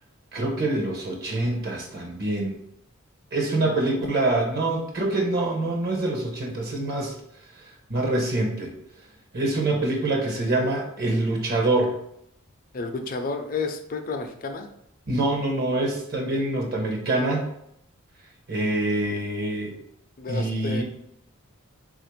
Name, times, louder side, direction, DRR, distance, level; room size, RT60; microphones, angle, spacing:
voice 1, 0.3-2.6 3.3-7.2 7.9-8.7 9.3-11.9 15.1-17.4 18.5-19.7 20.3-20.8, right 2 dB, 50° right, 1 dB, 0.8 m, -25 dB
voice 2, 12.7-14.7 20.2-20.8, left 4 dB, 45° left, 6 dB, 0.5 m, -31 dB
3.3 x 2.5 x 4.4 m, 0.75 s
head